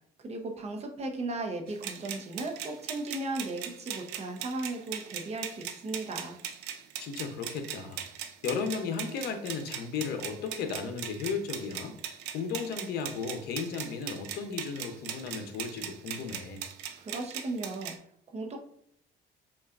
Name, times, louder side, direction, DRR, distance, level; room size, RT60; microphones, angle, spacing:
voice 1, 0.2-6.4 17.0-17.9 18.3-18.6, right 2 dB, 40° right, 3 dB, 0.7 m, -36 dB
sound 1, 1.7-18.0, right 9 dB, 90° right, 0.5 m, -40 dB
voice 2, 7.0-8.0 8.4-11.9 12.3-16.6, left 5 dB, 70° left, 7 dB, 0.7 m, -35 dB
5.5 x 2.4 x 2.4 m, 0.67 s
cardioid pair, 110°, 17 cm